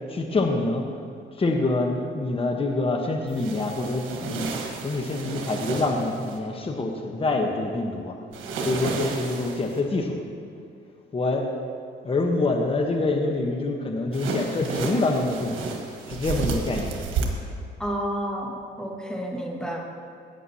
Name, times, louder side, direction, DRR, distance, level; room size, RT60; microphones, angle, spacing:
voice 1, 0.1-0.8 1.3-4.5 4.8-8.1 8.6-10.2 11.1-11.4 12.0-15.7 16.1-16.9, left 2 dB, 30° left, 2 dB, 1.0 m, -26 dB
sound 1, 3.3-6.4 8.3-9.8 14.1-17.2, right 4 dB, 90° right, 1.4 m, -32 dB
voice 2, 17.8-19.9, equal, 5° left, 0 dB, 1.7 m, -30 dB
16.5 x 9.1 x 2.8 m, 2.3 s
cardioid pair, 90°, 20 cm